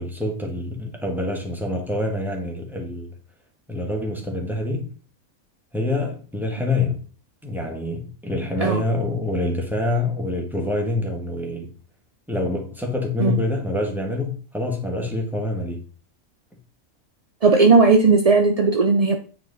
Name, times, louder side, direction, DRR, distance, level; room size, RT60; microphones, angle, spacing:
voice 1, 0.0-3.1 3.7-4.9 5.7-7.0 7.4-11.7 12.3-15.9, left 2 dB, ahead, 1.7 m, -26 dB
voice 2, 17.4-19.2, right 4 dB, 45° right, 0.4 m, -16 dB
9.3 x 4.4 x 4.1 m
omnidirectional pair, 1.5 m